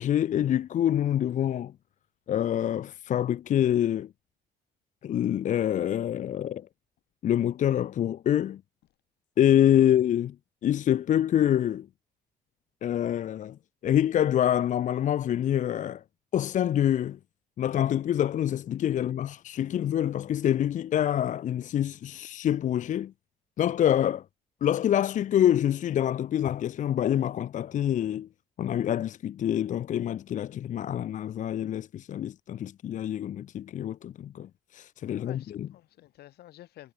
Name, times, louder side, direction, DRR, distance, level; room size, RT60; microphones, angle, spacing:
voice 1, 0.0-1.7 2.3-4.1 5.0-6.7 7.2-8.6 9.4-10.4 10.6-11.9 12.8-16.0 16.3-17.2 17.6-23.1 23.6-24.2 24.6-28.3 28.6-35.7, left 10 dB, 50° left, 0.7 m, -26 dB
voice 2, 35.1-36.9, left 14 dB, 70° left, 2.4 m, -51 dB
cardioid pair, 110°, 17 cm